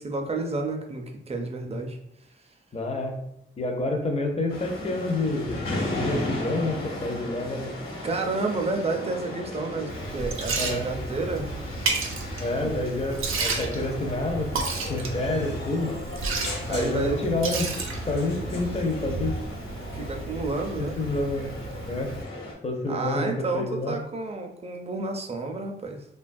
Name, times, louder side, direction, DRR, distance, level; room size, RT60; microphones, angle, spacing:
voice 1, 0.0-2.0 8.0-11.5 12.6-12.8 16.7-17.2 19.9-21.0 22.9-26.0, right 3 dB, 30° right, 3 dB, 0.4 m, -30 dB
voice 2, 2.7-3.2 3.6-5.6 5.9-7.7 10.6-10.9 12.4-14.5 14.9-16.0 16.7-17.7 18.1-19.4 21.0-21.5 21.9-22.1 22.6-24.0, left 2 dB, 30° left, 3 dB, 0.5 m, -28 dB
sound 1, 4.5-22.5, left 1 dB, 80° left, 1.0 m, -36 dB
Liquid, 9.9-22.2, right 3 dB, 85° right, 0.5 m, -32 dB
sound 2, 15.1-19.1, left 2 dB, 55° left, 0.8 m, -42 dB
2.8 x 2.2 x 2.5 m, 0.78 s
wide cardioid pair, 95°, 21 cm